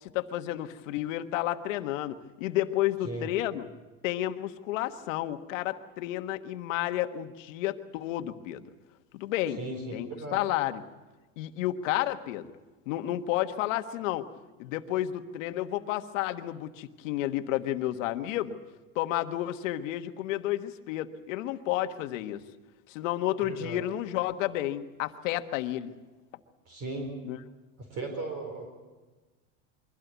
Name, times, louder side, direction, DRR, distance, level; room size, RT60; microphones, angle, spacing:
voice 1, 0.0-3.7 4.0-8.6 9.1-9.6 9.9-10.8 11.4-12.5 12.9-14.3 14.6-18.6 18.9-22.4 22.9-25.9 27.2-27.4, left 14 dB, 70° left, 8 dB, 1.5 m, -31 dB
voice 2, 9.6-10.4 23.4-23.8 26.7-27.1 27.8-28.7, right 2 dB, 40° right, 3 dB, 4.6 m, -36 dB
23.5 x 16.5 x 8.2 m, 1.2 s
supercardioid pair, 130°, 39 cm